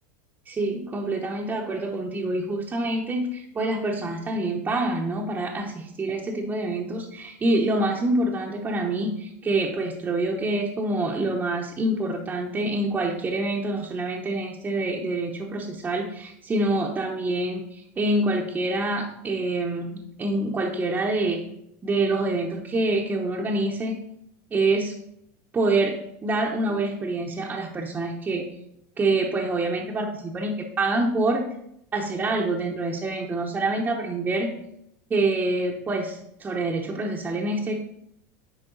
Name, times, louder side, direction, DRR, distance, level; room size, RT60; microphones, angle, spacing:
voice 1, 0.5-21.4 21.8-23.9 24.5-25.0 25.5-28.5 29.0-31.5 31.9-34.6 35.1-37.8, right 2 dB, 20° right, -2 dB, 0.8 m, -26 dB
10.0 x 3.7 x 3.9 m, 0.78 s
supercardioid pair, 125°, 9 cm